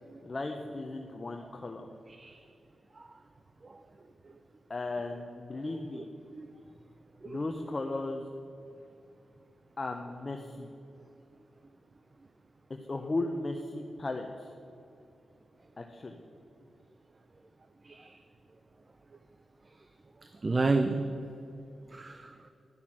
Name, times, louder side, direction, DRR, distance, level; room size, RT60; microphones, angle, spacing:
voice 1, 0.2-1.9 4.7-6.0 7.2-8.3 9.8-10.7 12.7-14.5 15.8-16.2, left 2 dB, 45° left, 3 dB, 0.8 m, -36 dB
voice 2, 17.8-18.2 20.4-21.0 21.9-22.3, right 3 dB, 40° right, 8 dB, 0.6 m, -30 dB
11.0 x 5.8 x 7.5 m, 2.6 s
supercardioid pair, 45°, 0 cm